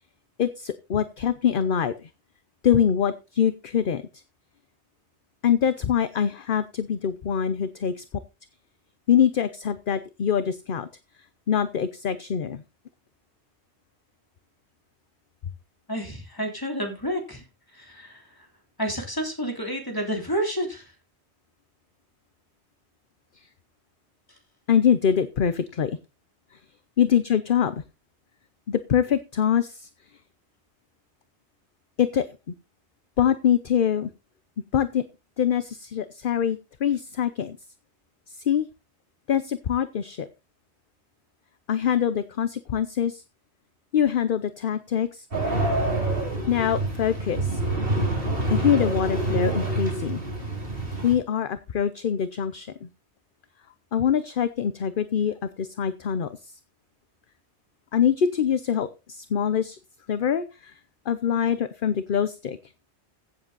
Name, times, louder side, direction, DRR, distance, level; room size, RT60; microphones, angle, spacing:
voice 1, 0.4-2.1 2.6-4.0 5.4-8.0 9.1-10.9 11.5-12.6 24.7-26.0 27.0-27.8 28.7-29.9 32.0-32.3 33.2-34.1 34.7-35.0 35.4-37.6 38.3-38.7 39.3-40.3 41.7-43.2 43.9-45.6 46.5-47.6 48.5-50.2 51.0-52.9 53.9-56.5 57.9-59.8 60.1-60.7 61.1-62.6, left 8 dB, 55° left, 12 dB, 0.9 m, -24 dB
voice 2, 15.9-17.4 17.7-18.2 18.8-20.9, equal, 20° left, 2 dB, 3.4 m, -30 dB
sound 1, 45.3-51.1, right 2 dB, 55° right, 4.1 m, -27 dB
15.5 x 7.8 x 4.0 m, 0.29 s
omnidirectional pair, 1.1 m